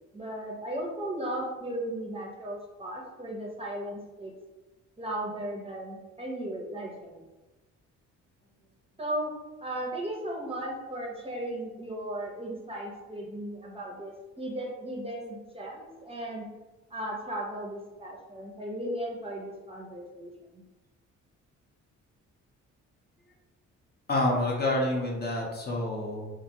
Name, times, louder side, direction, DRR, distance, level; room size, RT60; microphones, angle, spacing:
voice 1, 0.1-4.3 5.0-7.3 9.0-9.3 9.6-16.5 16.9-20.6, right 1 dB, 20° right, -2 dB, 0.6 m, -36 dB
voice 2, 24.1-26.3, left 1 dB, 35° left, -1 dB, 0.6 m, -28 dB
2.4 x 2.1 x 2.8 m, 1.1 s
cardioid pair, 90°, 30 cm